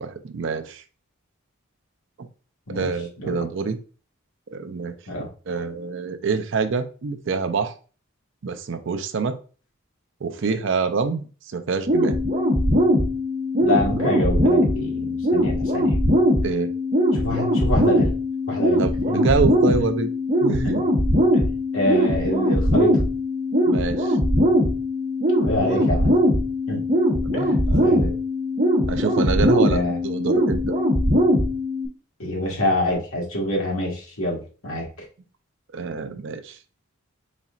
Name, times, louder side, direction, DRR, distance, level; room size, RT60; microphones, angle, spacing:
voice 1, 0.0-0.8 2.2-2.3 2.7-3.8 4.5-4.9 5.5-7.7 8.4-9.4 10.2-12.2 16.4-16.7 18.8-20.1 20.4-20.8 23.6-24.2 25.7-26.0 27.4-27.9 28.9-30.7 35.7-36.6, right 4 dB, 60° right, 9 dB, 0.5 m, -26 dB
sound 1, 11.9-31.9, equal, 35° right, 1.0 m, -20 dB
voice 2, 13.6-16.0 17.1-18.1 18.5-18.8 19.1-19.2 20.6-20.8 21.3-21.4 21.7-23.0 25.4-26.1 26.7-26.9 27.3-27.6 27.8-28.1 29.7-30.0 32.2-35.1, left 1 dB, 75° left, -2 dB, 1.6 m, -26 dB
4.1 x 4.1 x 2.4 m, 0.37 s
head